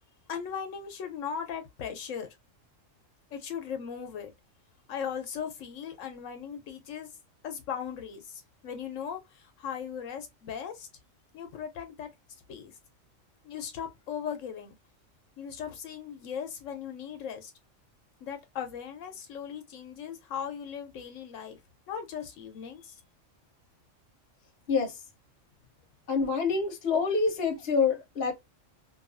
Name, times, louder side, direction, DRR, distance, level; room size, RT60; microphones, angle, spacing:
voice 1, 0.3-2.3 3.3-4.3 4.9-7.1 7.4-10.9 11.3-12.1 12.5-12.8 13.4-14.7 15.4-17.5 18.2-21.6 21.9-23.0, left 7 dB, 80° left, 1.0 m, -38 dB
voice 2, 24.7-25.0 26.1-28.3, left 5 dB, 55° left, 0.9 m, -26 dB
2.6 x 2.3 x 2.4 m
omnidirectional pair, 1.3 m